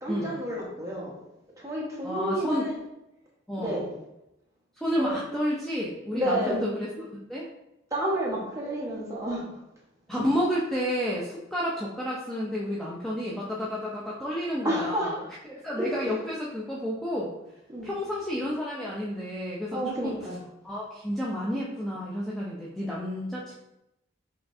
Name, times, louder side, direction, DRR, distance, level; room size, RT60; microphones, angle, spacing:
voice 1, 0.0-1.2 1.6-2.7 3.6-3.9 5.0-5.2 6.1-6.6 7.9-9.6 14.6-15.3 15.8-16.2 17.7-17.9 19.7-20.4, right 1 dB, 15° right, -5 dB, 1.2 m, -30 dB
voice 2, 2.0-2.7 3.5-3.8 4.8-7.5 10.1-15.1 15.5-17.3 17.8-20.1 20.6-23.5, equal, ahead, -6 dB, 0.5 m, -30 dB
5.8 x 3.1 x 2.6 m, 0.87 s
head